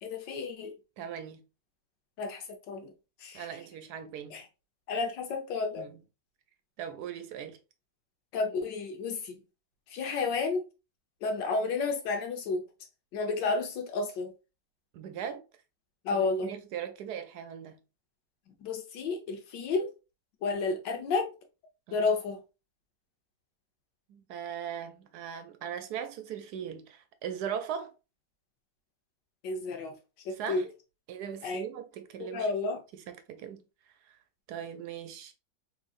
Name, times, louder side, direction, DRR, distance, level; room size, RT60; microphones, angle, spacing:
voice 1, 0.0-0.7 2.2-2.9 3.2-3.5 4.3-4.4 4.9-5.9 8.3-9.4 9.9-10.7 11.2-12.7 13.1-14.3 16.0-16.5 18.6-19.9 20.4-21.3 21.9-22.4 29.4-29.9 30.3-30.6 31.4-31.6 32.2-32.8, left 4 dB, 80° left, 1.5 m, -31 dB
voice 2, 1.0-1.4 3.3-4.4 5.8-6.0 6.8-7.6 14.9-15.4 16.1-17.8 21.9-22.1 24.1-27.9 30.3-30.7 31.1-32.5 32.9-33.6 34.1-34.2 34.5-35.3, right 8 dB, 70° right, 1.1 m, -39 dB
3.9 x 3.7 x 2.4 m
omnidirectional pair, 1.9 m